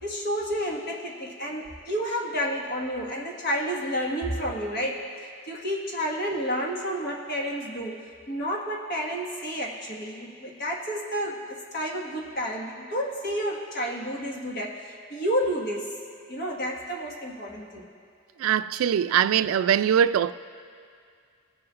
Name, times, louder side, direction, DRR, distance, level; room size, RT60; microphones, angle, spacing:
voice 1, 0.0-15.9 16.3-17.9, equal, 50° left, 1.5 m, -30 dB
voice 2, 18.4-20.3, right 9 dB, 85° right, 0.3 m, -22 dB
23.0 x 7.8 x 2.4 m
head